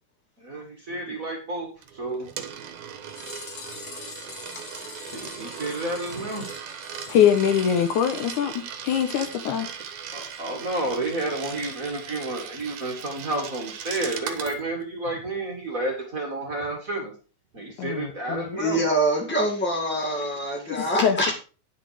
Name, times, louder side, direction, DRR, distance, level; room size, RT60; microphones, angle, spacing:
voice 1, 0.4-2.3 5.1-6.5 10.1-17.1 17.5-18.8, right 2 dB, 30° right, 1 dB, 1.8 m, -31 dB
Coin (dropping), 1.8-14.6, right 8 dB, 65° right, 2.3 m, -38 dB
sound 1, 3.0-9.2 9.5-9.6 9.8-9.9 10.3-10.4 10.7-10.8, left 5 dB, 45° left, 1.6 m, -44 dB
voice 2, 7.1-9.7 17.8-18.6 21.0-21.3, left 8 dB, 70° left, 8 dB, 2.1 m, -23 dB
voice 3, 18.6-21.3, right 1 dB, 15° left, 1 dB, 0.4 m, -25 dB
10.0 x 6.8 x 4.8 m, 0.35 s
omnidirectional pair, 4.1 m